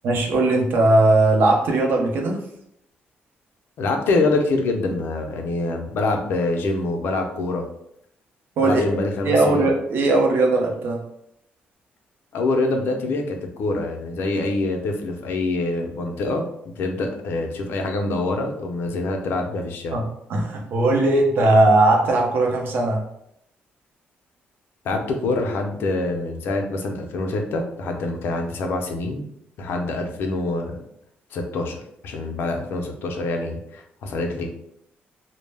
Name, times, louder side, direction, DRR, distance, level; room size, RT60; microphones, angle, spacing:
voice 1, 0.0-2.4 8.6-8.8 9.2-11.0 19.9-20.0 20.3-23.0, right 2 dB, 60° right, 1 dB, 0.5 m, -18 dB
voice 2, 3.8-7.6 8.6-9.7 12.3-20.0 24.8-29.3 29.6-30.8 31.3-34.5, left 2 dB, 70° left, 4 dB, 0.4 m, -25 dB
2.1 x 2.0 x 3.2 m, 0.75 s
cardioid pair, 155°, 4 cm